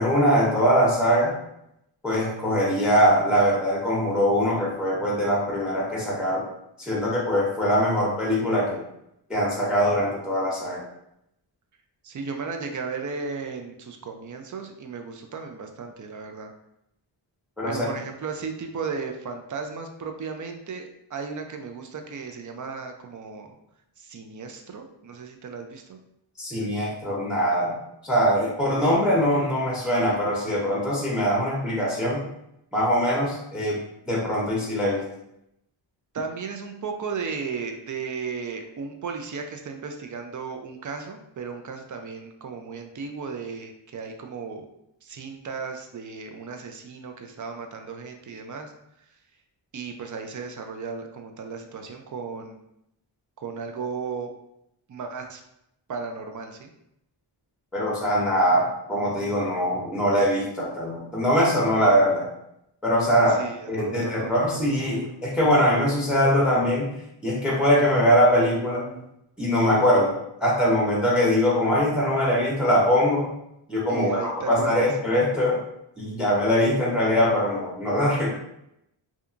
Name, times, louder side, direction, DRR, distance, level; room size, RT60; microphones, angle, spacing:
voice 1, 0.0-1.3 2.0-6.4 6.8-8.8 9.3-10.8 17.6-17.8 26.4-27.8 28.0-32.2 32.7-33.8 34.1-35.0 57.7-62.3 62.8-63.4 63.7-66.9 67.2-69.0 69.4-70.1 70.4-73.3 73.7-75.6 76.0-78.3, equal, ahead, -4 dB, 0.8 m, -22 dB
voice 2, 12.0-16.5 17.6-23.5 24.0-26.0 36.1-44.6 45.0-48.7 49.7-52.6 53.4-54.3 54.9-55.4 55.9-56.7 63.3-64.4 73.9-74.9, right 5 dB, 45° right, 5 dB, 0.4 m, -35 dB
2.7 x 2.4 x 2.4 m, 0.81 s
cardioid pair, 65°, 46 cm